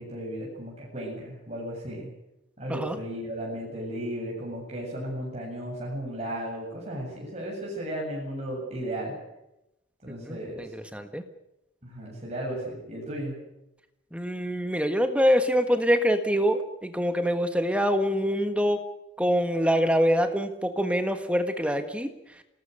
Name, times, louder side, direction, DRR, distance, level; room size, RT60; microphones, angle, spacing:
voice 1, 0.0-2.1 2.6-9.1 10.0-10.7 11.8-13.4, right 1 dB, 35° right, -3 dB, 7.6 m, -35 dB
voice 2, 10.1-11.2 14.1-18.8 19.2-22.1, equal, 5° right, 8 dB, 1.5 m, -25 dB
27.5 x 19.0 x 6.6 m, 0.90 s
head